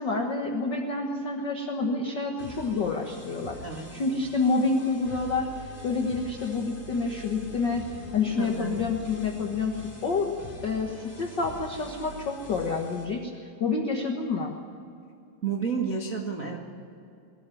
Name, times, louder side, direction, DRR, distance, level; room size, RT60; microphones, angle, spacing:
voice 1, 0.0-3.6 3.9-5.5 5.8-7.9 8.1-10.3 10.6-13.3 13.6-14.5, left 4 dB, 70° left, 2 dB, 1.0 m, -28 dB
sound 1, 2.4-13.0, right 1 dB, 15° left, 3.4 m, -44 dB
voice 2, 8.4-8.8 15.4-16.6, right 6 dB, 70° right, 1 dB, 0.7 m, -30 dB
22.0 x 14.5 x 9.9 m, 2.6 s
omnidirectional pair, 4.4 m